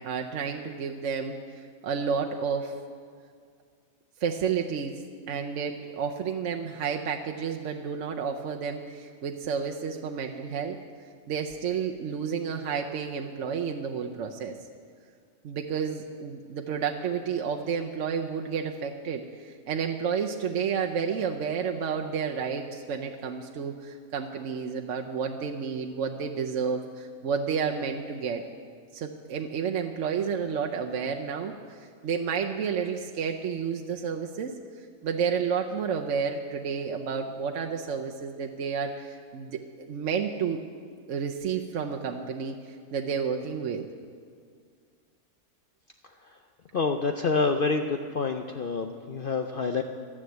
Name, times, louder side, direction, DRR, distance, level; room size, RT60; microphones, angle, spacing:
voice 1, 0.0-1.4 1.8-2.7 4.2-10.8 11.3-14.5 15.4-28.4 28.9-34.5 35.0-40.6 41.1-42.5 42.9-43.9, right 6 dB, 60° right, 2 dB, 1.0 m, -31 dB
voice 2, 46.7-49.8, left 4 dB, 65° left, 5 dB, 0.5 m, -27 dB
12.5 x 9.8 x 7.9 m, 2.1 s
omnidirectional pair, 1.6 m